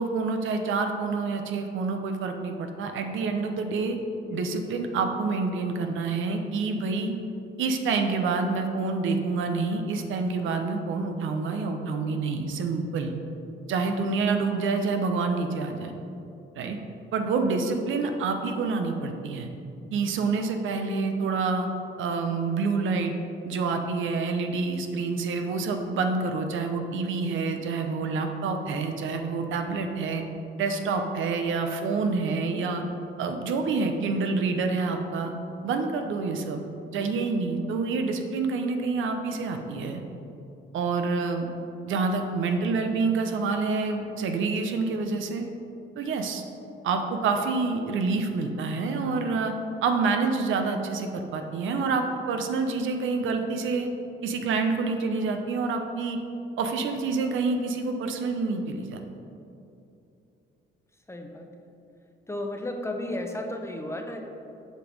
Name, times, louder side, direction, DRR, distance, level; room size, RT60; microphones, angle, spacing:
voice 1, 0.0-4.0 4.3-7.1 7.6-13.1 13.7-15.9 16.5-16.8 17.1-19.5 19.9-21.7 22.0-23.1 23.4-30.2 30.6-32.8 33.2-35.3 35.6-40.0 40.7-41.5 41.9-45.5 46.0-46.4 46.8-49.5 49.8-53.9 54.2-56.2 56.6-59.0, right 4 dB, 80° right, 5 dB, 0.8 m, -27 dB
voice 2, 61.1-61.5 62.3-64.3, left 1 dB, 15° left, 3 dB, 0.8 m, -33 dB
7.4 x 5.2 x 5.3 m, 2.8 s
cardioid pair, 90°, 20 cm